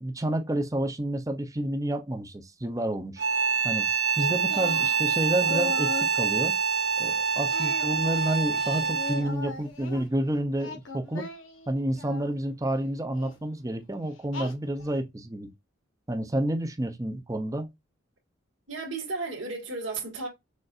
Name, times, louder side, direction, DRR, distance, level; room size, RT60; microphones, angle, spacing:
voice 1, 0.0-3.2 3.6-3.9 4.2-6.6 7.0-11.3 11.7-15.5 16.1-17.7, right 1 dB, 15° right, 0.6 m, -29 dB
sound 1, 3.2-9.4, right 6 dB, 55° right, 0.9 m, -26 dB
Singing, 4.5-6.2 7.5-10.1 10.5-12.3 13.1-13.4 14.3-15.0, left 3 dB, 85° left, 1.2 m, -39 dB
voice 2, 18.7-20.3, right 3 dB, 80° right, 1.9 m, -33 dB
6.4 x 2.5 x 2.6 m
head